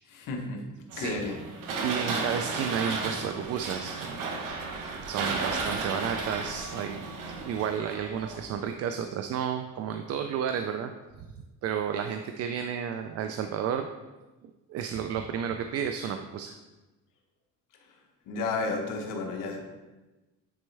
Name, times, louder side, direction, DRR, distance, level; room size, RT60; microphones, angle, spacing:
voice 1, 0.1-0.6 1.0-1.4 18.3-19.6, left 3 dB, 75° left, 2 dB, 1.3 m, -32 dB
voice 2, 0.9-1.2 1.8-4.6 5.1-7.0 7.4-10.9 11.6-13.9 14.4-16.5, right 8 dB, 50° right, 7 dB, 0.4 m, -32 dB
sound 1, 0.9-8.5, right 4 dB, 70° right, 1.2 m, -34 dB
9.5 x 4.3 x 3.3 m, 1.1 s
cardioid pair, 140°, 33 cm